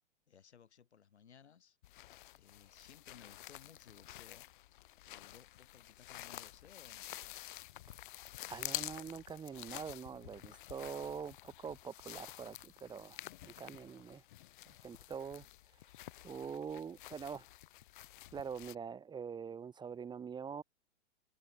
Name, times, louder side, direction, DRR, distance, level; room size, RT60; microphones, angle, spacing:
voice 1, 0.3-2.1 2.4-4.5 5.0-7.1 15.3-15.5, left 7 dB, 65° left, 5.3 m, -60 dB
sound 1, 1.8-18.7, left 15 dB, 45° left, 0.7 m, -49 dB
voice 2, 8.5-14.3 14.6-16.0 16.2-17.5 18.3-20.6, right 6 dB, 10° right, 1.3 m, -45 dB
figure-of-eight pair, 110°, 35 cm